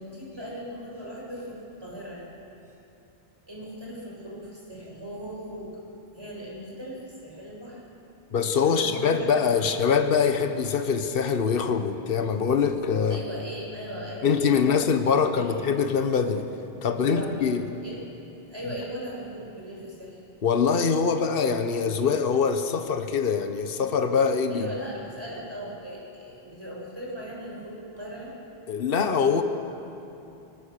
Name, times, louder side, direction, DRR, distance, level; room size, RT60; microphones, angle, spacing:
voice 1, 0.0-2.2 3.5-5.7 6.1-7.8 8.6-9.7 13.1-14.8 15.1-15.6 16.8-17.5 17.8-18.0 18.5-20.2 24.5-28.3, equal, 25° right, -4 dB, 6.7 m, -39 dB
voice 2, 8.3-13.2 14.2-16.5 16.8-17.6 20.4-24.7 28.7-29.4, left 6 dB, 65° left, 7 dB, 1.3 m, -23 dB
24.5 x 20.0 x 6.7 m, 2.9 s
omnidirectional pair, 1.0 m